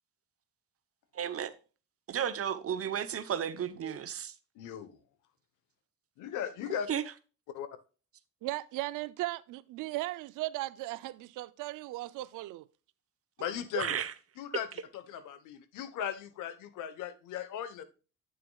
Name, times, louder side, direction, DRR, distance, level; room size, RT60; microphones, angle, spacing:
voice 1, 1.1-1.5 2.1-4.3 6.9-7.0 13.8-14.1, right 9 dB, 50° right, 0.9 m, -33 dB
voice 2, 4.5-5.0 6.2-6.9 7.5-7.7 13.4-14.0 14.4-17.8, left 9 dB, 90° left, 1.1 m, -37 dB
voice 3, 8.4-12.6, right 18 dB, 90° right, 0.5 m, -37 dB
9.4 x 6.6 x 2.3 m
cardioid pair, 90°, 30 cm